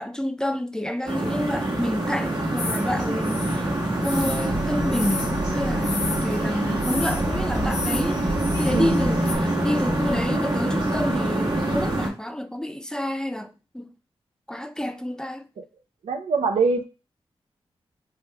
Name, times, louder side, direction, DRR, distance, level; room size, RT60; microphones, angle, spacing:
voice 1, 0.0-13.9 14.5-15.5, left 1 dB, 5° left, 0.4 m, -29 dB
sound 1, 1.1-12.1, right 1 dB, 45° right, 1.2 m, -25 dB
sound 2, 2.6-9.3, left 3 dB, 80° left, 1.0 m, -35 dB
voice 2, 6.6-6.9 8.7-9.0 15.6-15.7 16.0-16.8, right 4 dB, 85° right, 0.7 m, -24 dB
4.3 x 3.2 x 2.3 m
cardioid pair, 55°, 10 cm